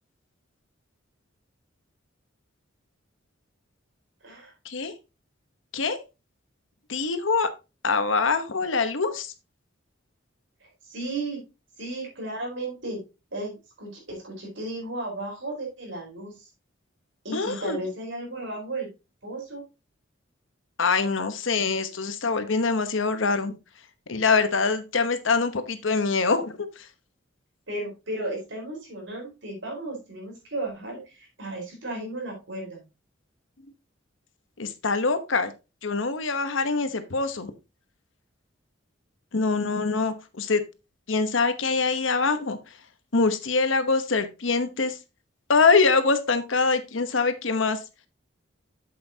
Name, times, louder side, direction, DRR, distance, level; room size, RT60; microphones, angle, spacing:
voice 1, 6.9-7.5 7.8-9.3 17.3-17.8 20.8-23.6 24.1-26.9 34.6-35.5 35.8-37.5 39.3-40.6 41.1-42.7 43.1-45.0 45.5-47.8, left 4 dB, 75° left, 10 dB, 1.0 m, -24 dB
voice 2, 10.8-11.4 11.8-13.0 13.3-16.5 17.2-18.9 19.2-19.6 27.7-32.8, right 2 dB, 65° right, -1 dB, 4.6 m, -34 dB
7.7 x 7.7 x 2.8 m, 0.27 s
head